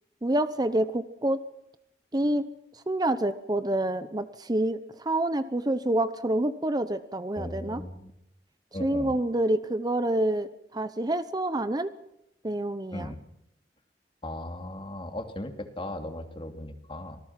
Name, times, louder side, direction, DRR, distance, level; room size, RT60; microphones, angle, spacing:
voice 1, 0.2-1.4 2.1-7.8 8.8-11.9 12.4-13.1, right 1 dB, 25° right, 11 dB, 0.8 m, -27 dB
voice 2, 7.3-8.1 8.7-9.2 12.9-13.2 14.2-17.2, left 1 dB, 30° left, 6 dB, 2.7 m, -37 dB
26.0 x 19.0 x 5.9 m, 0.80 s
head